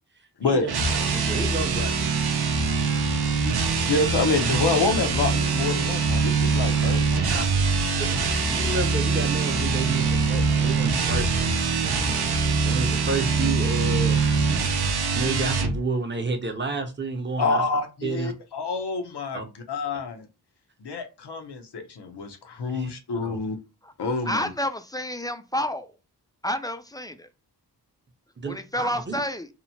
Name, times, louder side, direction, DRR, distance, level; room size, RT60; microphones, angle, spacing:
voice 1, 0.5-2.1 7.3-7.4 7.9-12.0 12.6-14.5 15.1-17.6 18.0-18.3 19.3-19.4 22.7-22.9 23.2-23.4 28.4-29.2, right 3 dB, 30° right, 0.7 m, -31 dB
sound 1, 0.6-15.8, right 4 dB, 70° right, 0.6 m, -23 dB
voice 2, 3.8-7.6 17.4-20.3 20.8-23.6 24.0-24.5, left 3 dB, 75° left, 0.7 m, -27 dB
voice 3, 24.3-25.9 26.4-27.3 28.5-29.5, left 1 dB, 10° left, 0.3 m, -29 dB
2.9 x 2.1 x 2.7 m
wide cardioid pair, 55°, 40 cm